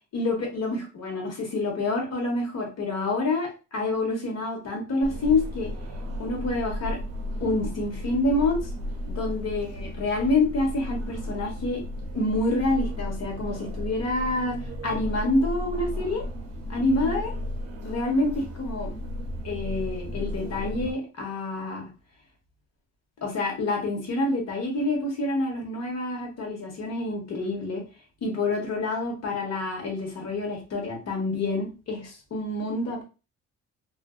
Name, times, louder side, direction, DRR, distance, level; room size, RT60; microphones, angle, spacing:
voice 1, 0.1-5.7 6.2-7.0 7.4-8.6 9.0-11.8 12.1-14.6 14.8-16.2 16.7-17.3 17.8-18.9 19.4-21.8 23.2-27.8 28.2-33.0, left 2 dB, 60° left, 1 dB, 1.0 m, -27 dB
sound 1, 5.0-20.9, left 1 dB, 55° right, 0.7 m, -34 dB
2.5 x 2.4 x 2.3 m, 0.32 s
cardioid pair, 90°, 30 cm